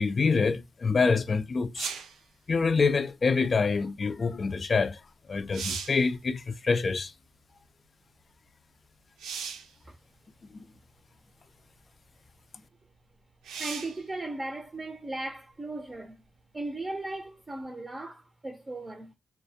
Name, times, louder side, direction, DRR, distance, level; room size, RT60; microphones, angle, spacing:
voice 1, 0.0-1.9 2.5-5.0 5.3-7.1 10.5-10.6, left 4 dB, 45° left, 0.4 m, -26 dB
sound 1, 1.7-2.2 4.9-5.0 5.4-6.1 9.2-9.7 10.7-10.8 13.4-14.0 17.6-17.7, right 6 dB, 85° right, 0.4 m, -36 dB
voice 2, 13.6-16.2 16.5-19.1, right 2 dB, 30° right, 0.6 m, -37 dB
2.3 x 2.1 x 2.7 m
supercardioid pair, 55°, 0 cm